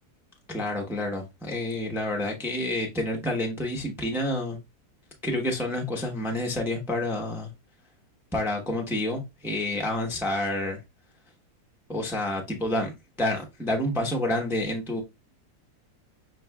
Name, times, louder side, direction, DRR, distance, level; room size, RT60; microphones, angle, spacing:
voice 1, 0.5-4.6 5.2-7.5 8.3-10.8 11.9-12.9 13.2-15.0, left 1 dB, ahead, 0.5 m, -28 dB
6.4 x 3.1 x 2.3 m
omnidirectional pair, 1.7 m